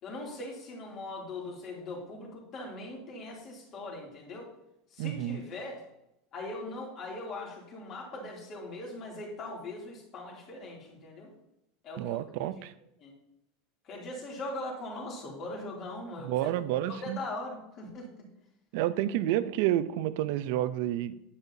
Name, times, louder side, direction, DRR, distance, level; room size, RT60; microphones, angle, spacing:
voice 1, 0.0-4.5 4.9-5.8 6.3-11.3 11.8-12.6 13.0-13.1 13.8-16.5 16.9-18.1, left 2 dB, 40° left, -1 dB, 2.8 m, -40 dB
voice 2, 5.0-5.4 12.0-12.7 16.2-17.2 18.7-21.2, right 13 dB, 65° right, 13 dB, 0.5 m, -29 dB
9.6 x 8.8 x 2.8 m, 0.83 s
supercardioid pair, 140°, 0 cm